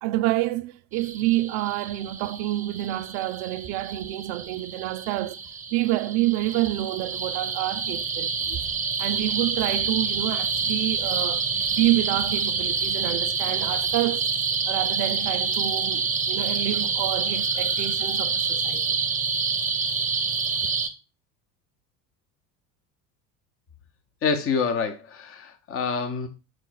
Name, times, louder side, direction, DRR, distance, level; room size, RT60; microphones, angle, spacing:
voice 1, 0.0-5.4 5.7-8.6 9.0-11.4 11.7-14.3 14.7-19.0, right 16 dB, 40° right, 0.4 m, -28 dB
sound 1, 0.9-20.9, right 5 dB, 15° right, 0.8 m, -27 dB
voice 2, 24.2-26.3, left 5 dB, 25° left, 1.1 m, -27 dB
6.4 x 4.4 x 4.5 m
figure-of-eight pair, 70°, 49 cm